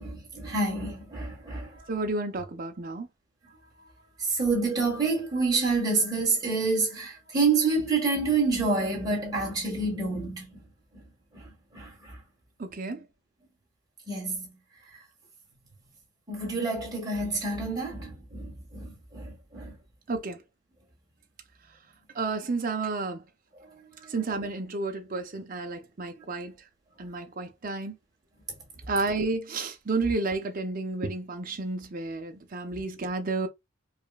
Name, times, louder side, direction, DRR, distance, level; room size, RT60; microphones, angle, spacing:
voice 1, 0.0-1.8 3.8-3.9 4.2-10.6 11.3-12.2 14.1-14.6 16.3-19.7 24.0-24.1 32.7-32.8, right 3 dB, 20° right, 1.7 m, -28 dB
voice 2, 1.9-3.1 12.6-13.1 20.1-20.4 22.1-23.2 24.1-26.5 27.0-28.0 28.9-33.5, right 3 dB, 45° right, 0.6 m, -31 dB
4.8 x 2.3 x 2.4 m
head